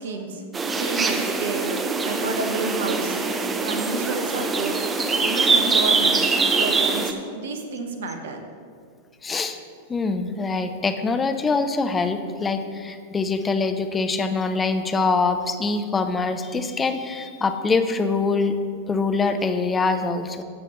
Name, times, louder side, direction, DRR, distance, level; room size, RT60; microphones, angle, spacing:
voice 1, 0.0-4.8 5.2-6.3 6.6-8.4, right 3 dB, 65° right, 6 dB, 1.1 m, -31 dB
sound 1, 0.5-7.1, right 4 dB, 20° right, 0.8 m, -23 dB
voice 2, 9.2-9.6 9.9-18.5 18.9-20.4, left 4 dB, 20° left, 8 dB, 0.7 m, -24 dB
13.5 x 7.7 x 3.1 m, 2.1 s
figure-of-eight pair, 95°, 0 cm